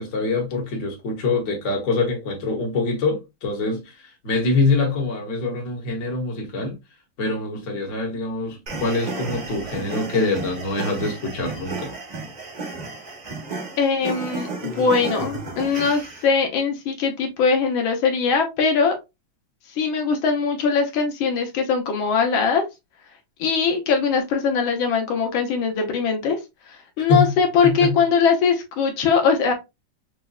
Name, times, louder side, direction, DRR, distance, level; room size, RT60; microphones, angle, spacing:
voice 1, 0.0-6.8 7.2-11.9 27.0-27.3 27.6-27.9, left 3 dB, 45° left, 1.3 m, -24 dB
sound 1, 8.7-16.3, right 3 dB, 45° right, 0.5 m, -33 dB
voice 2, 13.8-18.9 19.8-22.6 23.4-26.4 26.7-29.5, left 5 dB, 85° left, 1.6 m, -21 dB
5.1 x 2.2 x 2.3 m
omnidirectional pair, 2.1 m